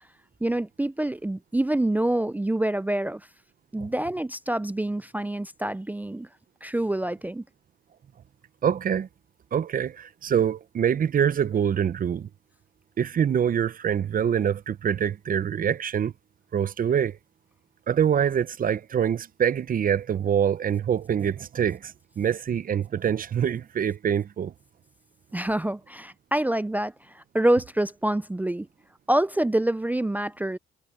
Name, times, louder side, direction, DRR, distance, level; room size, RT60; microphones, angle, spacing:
voice 1, 0.4-3.2 3.7-6.3 6.6-7.4 25.3-28.7 29.1-30.6, right 1 dB, 10° right, 0.5 m, -26 dB
voice 2, 8.6-9.1 9.5-12.3 13.0-16.1 16.5-17.2 17.9-24.5, right 8 dB, 45° right, 0.8 m, -25 dB
cardioid pair, 90°, 20 cm